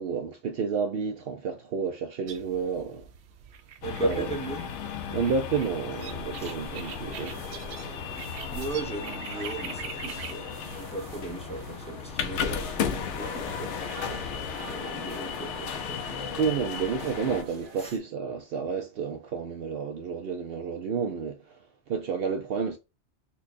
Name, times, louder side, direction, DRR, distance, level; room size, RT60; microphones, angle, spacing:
voice 1, 0.0-3.1 4.0-4.3 5.1-7.4 16.4-21.6 21.9-22.8, right 5 dB, 65° right, 0.7 m, -30 dB
sound 1, 2.3-10.6, right 9 dB, 90° right, 0.9 m, -44 dB
sound 2, 3.8-17.4, left 7 dB, 85° left, 0.9 m, -35 dB
voice 2, 3.8-4.7 6.4-6.5 8.5-13.8 14.6-16.6 17.8-18.0, right 2 dB, 5° left, 0.8 m, -36 dB
sound 3, 6.0-18.0, right 3 dB, 50° right, 1.0 m, -45 dB
4.4 x 2.2 x 2.5 m
omnidirectional pair, 1.2 m